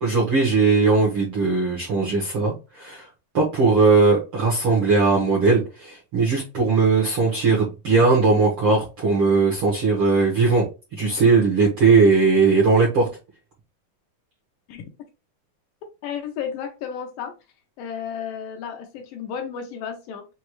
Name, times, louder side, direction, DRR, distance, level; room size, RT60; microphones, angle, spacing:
voice 1, 0.0-3.1 3.3-10.7 10.9-13.1, right 4 dB, 65° right, 1.3 m, -19 dB
voice 2, 16.0-17.3 17.8-20.3, left 7 dB, 75° left, 2.2 m, -32 dB
6.4 x 2.4 x 3.0 m
omnidirectional pair, 4.3 m